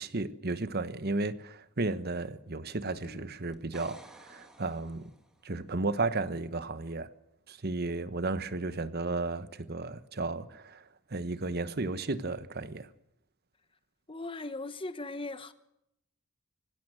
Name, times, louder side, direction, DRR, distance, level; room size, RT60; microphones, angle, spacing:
voice 1, 0.0-5.1 5.4-7.1 7.5-10.8 11.1-12.9, right 3 dB, 45° right, 1.1 m, -34 dB
sound 1, 2.7-4.1, left 1 dB, 75° left, 3.7 m, -55 dB
sound 2, 3.5-5.5 9.2-9.3, equal, 5° right, 2.0 m, -54 dB
voice 2, 14.1-15.5, left 2 dB, 25° left, 1.2 m, -38 dB
24.5 x 16.5 x 7.7 m
head